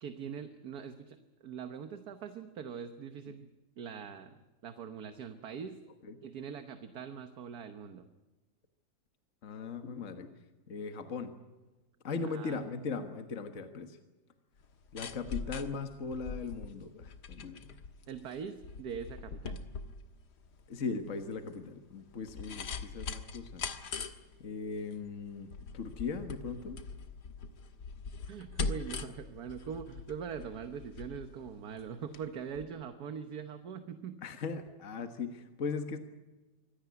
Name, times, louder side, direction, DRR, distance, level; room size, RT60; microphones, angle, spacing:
voice 1, 0.0-3.5 3.8-5.8 6.2-8.1 12.2-12.6 18.1-19.6 28.3-34.2 35.0-35.1, right 7 dB, 70° right, 8 dB, 1.6 m, -42 dB
voice 2, 9.4-10.3 10.7-11.3 12.0-14.0 14.9-17.8 20.7-23.7 24.4-26.8 34.2-36.0, left 4 dB, 50° left, 7 dB, 1.7 m, -39 dB
sound 1, 14.6-32.3 32.6-32.7, left 4 dB, 90° left, 2.0 m, -42 dB
24.5 x 17.0 x 9.4 m, 1.1 s
omnidirectional pair, 1.7 m